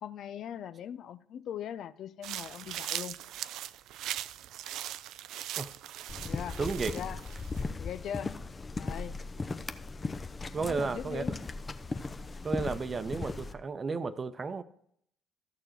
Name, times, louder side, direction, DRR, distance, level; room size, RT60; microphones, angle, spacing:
voice 1, 0.0-3.2 6.2-7.2 7.8-8.4 8.7-9.2 10.6-11.3, left 9 dB, 60° left, 0.4 m, -40 dB
sound 1, 2.2-7.6, right 12 dB, 65° right, 0.3 m, -40 dB
sound 2, 6.1-13.5, left 3 dB, 30° left, 0.7 m, -37 dB
voice 2, 6.6-6.9 10.5-11.2 12.4-14.6, right 4 dB, 35° right, 0.7 m, -33 dB
13.5 x 6.7 x 4.5 m
hypercardioid pair, 50°, 0 cm